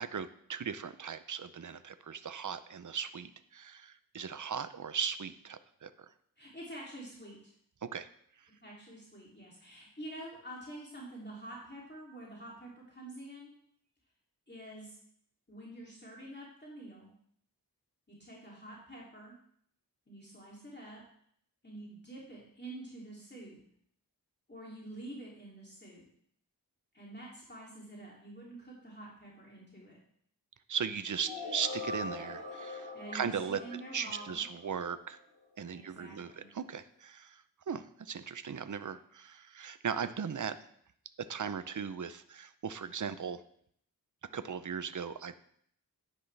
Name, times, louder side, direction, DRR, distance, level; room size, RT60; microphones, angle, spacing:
voice 1, 0.0-5.9 7.8-8.1 30.7-33.6 33.9-35.2 35.6-40.6 41.2-43.4 44.3-45.4, right 7 dB, 55° right, 12 dB, 0.6 m, -38 dB
voice 2, 6.4-7.5 8.6-13.5 14.5-15.0 15.5-17.1 18.1-19.4 20.1-21.0 21.6-23.6 24.5-26.1 26.9-30.0 32.9-34.4 35.7-36.5, right 1 dB, 30° left, -5 dB, 2.8 m, -47 dB
sound 1, 31.2-35.1, left 2 dB, 75° left, 4.0 m, -42 dB
10.5 x 9.6 x 3.3 m, 0.65 s
wide cardioid pair, 55°, 37 cm